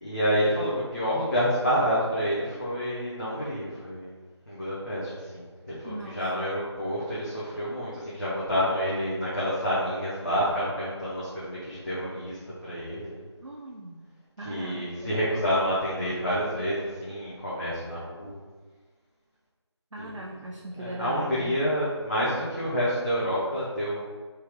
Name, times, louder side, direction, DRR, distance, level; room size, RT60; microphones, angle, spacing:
voice 1, 0.0-4.1 4.5-13.2 14.4-18.4 20.0-20.2 20.8-24.0, equal, 40° left, -10 dB, 0.7 m, -28 dB
voice 2, 5.8-6.5 13.4-14.0 14.4-15.2 19.9-21.6, right 1 dB, 90° right, -1 dB, 0.4 m, -39 dB
3.3 x 2.3 x 3.4 m, 1.4 s
figure-of-eight pair, 170°, 15 cm